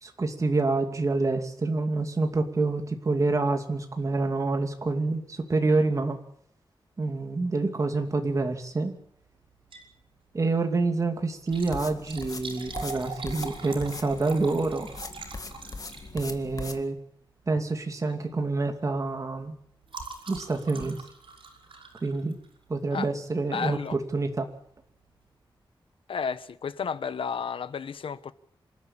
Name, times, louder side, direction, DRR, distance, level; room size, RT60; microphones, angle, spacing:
voice 1, 0.0-6.2 7.0-9.0 10.3-14.9 16.1-16.9 17.5-19.5 20.3-21.0 22.0-22.3 22.7-24.5, right 3 dB, 35° right, 2.6 m, -27 dB
Liquid, 9.5-10.0 10.3-10.4 11.3-16.5 17.4-17.7 18.1-18.3 18.6-22.7 23.6-23.9 24.4-24.5 24.7-24.8, right 4 dB, 80° right, 5.8 m, -42 dB
sound 1, 11.5-16.8, left 3 dB, 40° left, 2.0 m, -41 dB
voice 2, 23.5-23.9 26.1-28.3, left 6 dB, 85° left, 1.1 m, -32 dB
27.0 x 13.0 x 8.7 m
wide cardioid pair, 160°, 9 cm